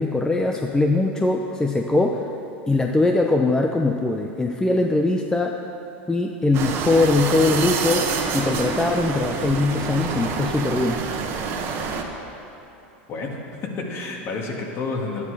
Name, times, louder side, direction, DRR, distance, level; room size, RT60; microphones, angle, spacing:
voice 1, 0.0-2.3 2.7-5.6 6.1-11.0, left 2 dB, 10° left, 3 dB, 0.6 m, -21 dB
sound 1, 6.5-12.0, right 5 dB, 45° right, 1.3 m, -27 dB
voice 2, 13.1-15.3, left 3 dB, 40° left, 1 dB, 2.0 m, -30 dB
11.5 x 9.6 x 4.8 m, 2.8 s
hypercardioid pair, 100°, 6 cm